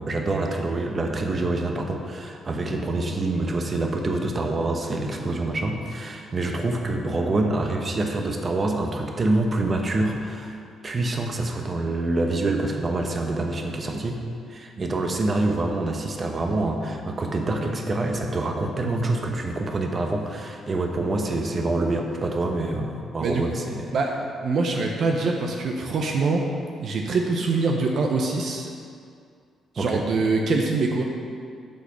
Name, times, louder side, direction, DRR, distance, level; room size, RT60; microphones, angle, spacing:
voice 1, 0.0-10.6 10.8-14.2 14.5-23.9 29.8-30.1, right 2 dB, 35° right, 3 dB, 0.9 m, -26 dB
voice 2, 23.9-26.5 26.8-28.7 29.7-31.0, right 3 dB, 60° right, 2 dB, 0.7 m, -24 dB
8.7 x 4.1 x 6.3 m, 2.3 s
cardioid pair, 90°, 0 cm